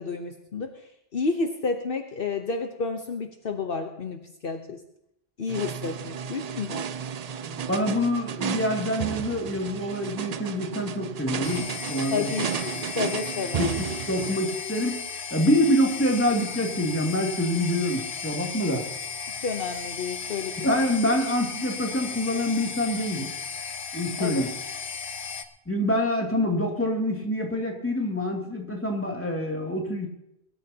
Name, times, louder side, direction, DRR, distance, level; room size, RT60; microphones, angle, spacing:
voice 1, 0.0-4.8 5.4-6.9 12.1-13.6 19.4-20.8 24.2-24.5, left 4 dB, 60° left, 5 dB, 1.2 m, -31 dB
sound 1, 5.5-14.4, right 8 dB, 50° right, 0.5 m, -33 dB
voice 2, 7.4-12.3 13.6-15.0 15.3-18.8 20.6-23.3 23.9-24.5 25.7-30.1, left 1 dB, 10° left, -1 dB, 2.7 m, -26 dB
sound 2, 11.4-25.4, left 5 dB, 90° left, 1.3 m, -35 dB
22.5 x 12.5 x 2.9 m, 0.80 s
omnidirectional pair, 1.1 m